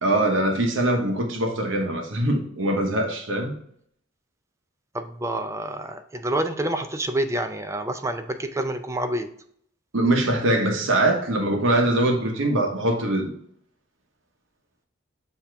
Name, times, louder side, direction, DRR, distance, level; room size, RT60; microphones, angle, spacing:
voice 1, 0.0-3.6 9.9-13.3, right 1 dB, 75° right, 2 dB, 1.2 m, -22 dB
voice 2, 4.9-9.3, right 1 dB, 15° right, 8 dB, 0.5 m, -28 dB
7.1 x 2.9 x 4.6 m, 0.64 s
head